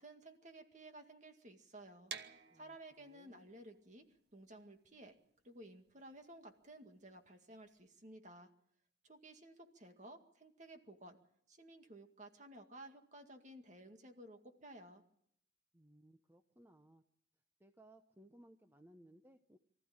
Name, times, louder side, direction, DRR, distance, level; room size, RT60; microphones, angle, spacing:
voice 1, 0.0-4.1 4.3-5.2 5.4-8.5 9.0-11.2 11.5-15.0, right 1 dB, 40° right, 5 dB, 2.1 m, -55 dB
sound 1, 2.1-7.9, right 7 dB, 60° right, 1.2 m, -54 dB
voice 2, 2.5-3.4 15.7-17.0 17.6-19.6, right 1 dB, 10° right, 7 dB, 0.8 m, -63 dB
24.0 x 14.5 x 8.8 m, 0.72 s
head